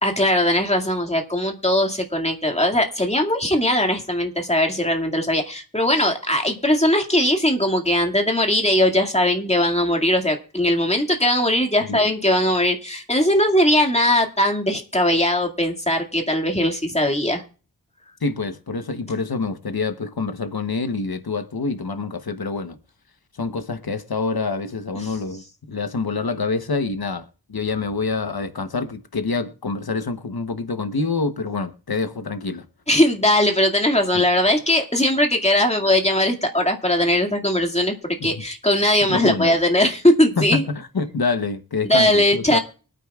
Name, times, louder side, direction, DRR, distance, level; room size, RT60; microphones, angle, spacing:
voice 1, 0.0-17.4 32.9-40.7 41.8-42.6, left 1 dB, 20° left, 2.1 m, -20 dB
voice 2, 18.2-22.8 23.3-32.6 34.1-34.2 38.2-38.4 39.1-39.5 40.4-42.6, left 4 dB, 85° left, 1.0 m, -26 dB
24.0 x 9.2 x 2.4 m
wide cardioid pair, 55°, 36 cm